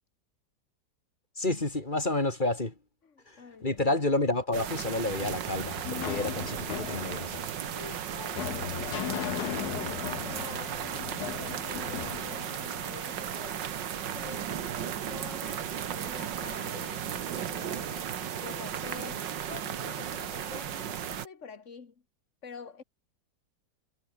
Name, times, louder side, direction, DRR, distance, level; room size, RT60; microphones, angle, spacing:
voice 1, 1.4-2.8 3.3-7.5, left 2 dB, 25° left, 2.8 m, -30 dB
voice 2, 3.4-3.9 7.7-10.9 11.2-13.7 14.0-21.9 22.4-22.8, left 5 dB, 45° left, 2.1 m, -47 dB
sound 1, 4.5-21.3, right 9 dB, 85° right, 2.0 m, -35 dB
sound 2, 5.2-13.3, left 11 dB, 65° left, 1.3 m, -38 dB
omnidirectional pair, 1.9 m